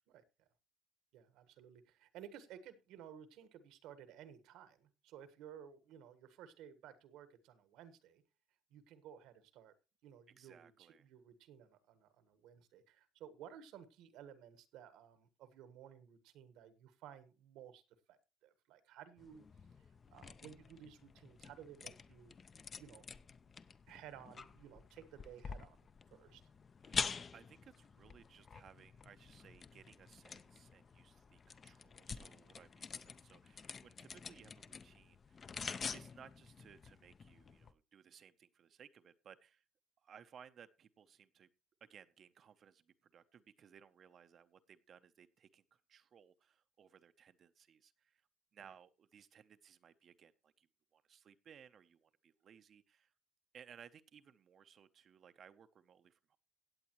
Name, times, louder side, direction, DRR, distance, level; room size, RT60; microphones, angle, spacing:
voice 1, 1.1-8.2 8.7-9.7 10.0-17.8 18.1-18.2 18.4-19.4 20.1-22.3 22.8-23.0 23.9-25.8 26.1-26.4, right 9 dB, 75° right, 1.3 m, -56 dB
voice 2, 10.3-11.1 26.8-39.6 40.0-41.5 41.8-48.2 48.5-53.1 53.5-56.4, right 8 dB, 40° right, 0.6 m, -61 dB
sound 1, 19.2-37.7, left 5 dB, 30° left, 0.5 m, -48 dB
16.5 x 8.2 x 3.0 m
cardioid pair, 150°, 0 cm